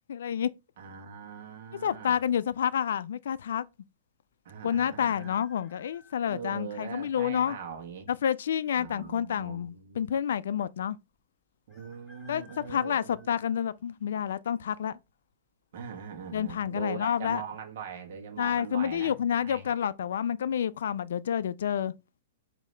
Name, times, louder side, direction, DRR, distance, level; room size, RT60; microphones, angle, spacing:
voice 1, 0.1-0.5 1.8-3.6 4.6-7.6 8.1-11.0 12.3-15.0 16.3-17.4 18.4-21.9, left 8 dB, 70° left, 0.3 m, -29 dB
voice 2, 0.8-2.2 4.4-5.3 6.2-8.1 8.8-10.0 11.7-13.3 15.7-19.7, right 6 dB, 50° right, 1.1 m, -41 dB
sound 1, 4.7-6.7 7.4-7.5 8.6-9.2 9.5-9.6 9.8-9.9 11.7-14.3 14.8-15.2 16.4-16.7 17.0-17.1 17.6-18.0 18.5-18.6, equal, 5° left, 1.4 m, -59 dB
5.2 x 2.7 x 3.2 m
hypercardioid pair, 165°, 0 cm